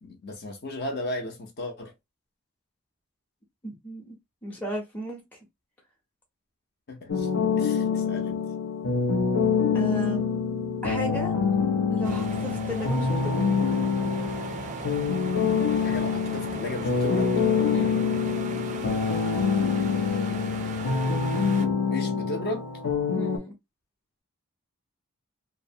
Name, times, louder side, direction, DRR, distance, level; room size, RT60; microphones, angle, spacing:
voice 1, 0.0-1.9 6.9-7.3 7.6-8.4 15.8-17.3 19.9-21.3 21.9-22.7, left 1 dB, 45° left, 0.6 m, -35 dB
voice 2, 3.6-4.2 4.4-5.2 8.0-8.1 9.7-10.3 10.8-11.3 11.9-13.6 17.7-18.0 23.1-23.5, equal, 5° left, 0.6 m, -35 dB
sound 1, 7.1-23.4, left 5 dB, 90° left, 0.6 m, -26 dB
sound 2, 12.0-21.7, right 4 dB, 35° right, 0.3 m, -38 dB
2.7 x 2.1 x 2.7 m
head